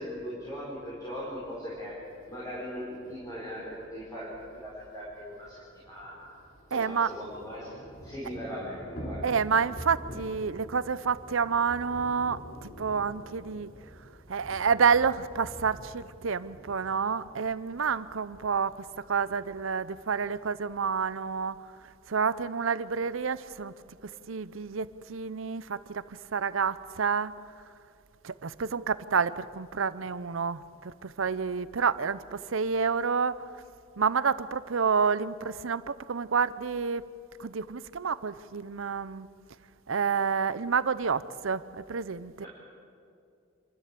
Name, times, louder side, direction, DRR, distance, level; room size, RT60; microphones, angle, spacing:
voice 1, 0.0-2.0 2.3-5.6 5.9-6.3 6.7-7.7 8.0-9.2 42.4-42.5, equal, 15° left, 4.8 m, -39 dB
Thunder / Rain, 4.7-4.8 5.0-5.1 5.4-21.3, equal, 45° left, 3.5 m, -47 dB
voice 2, 6.7-7.1 9.2-13.7 14.3-21.6 22.1-23.7 24.0-26.0 26.3-27.3 28.2-33.4 34.0-37.0 37.4-39.3 39.9-42.5, right 6 dB, 70° right, 0.6 m, -29 dB
27.5 x 13.0 x 8.5 m
head